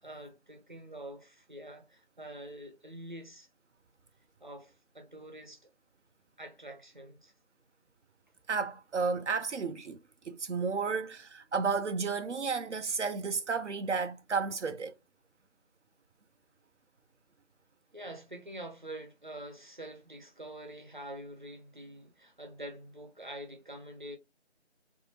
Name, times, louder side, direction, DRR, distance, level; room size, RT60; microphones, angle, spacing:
voice 1, 0.0-3.5 4.4-5.7 6.4-7.3 17.9-24.2, right 1 dB, 45° right, 0.8 m, -46 dB
voice 2, 8.5-10.0 10.3-14.9, right 5 dB, 85° right, 0.5 m, -32 dB
3.5 x 2.6 x 2.8 m
figure-of-eight pair, 170°, 35 cm